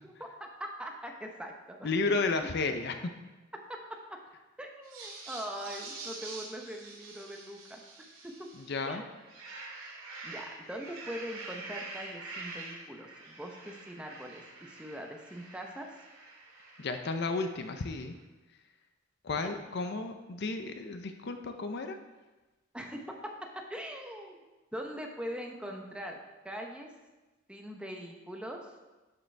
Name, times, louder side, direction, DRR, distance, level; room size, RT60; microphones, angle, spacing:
voice 1, 0.0-2.2 3.7-3.8 4.1-4.2 4.6-7.8 8.2-8.5 8.8-9.1 10.2-15.9 19.4-19.5 22.7-23.0 23.5-24.4 24.7-26.2 26.4-26.9 27.5-28.6, equal, 5° right, 1 dB, 0.8 m, -42 dB
voice 2, 1.8-2.9 8.6-9.0 16.8-18.1 19.2-22.0, left 3 dB, 55° left, 7 dB, 0.6 m, -32 dB
sound 1, 4.8-8.7 9.1-17.8, right 3 dB, 80° right, 2.2 m, -46 dB
11.5 x 6.7 x 3.4 m, 1.2 s
head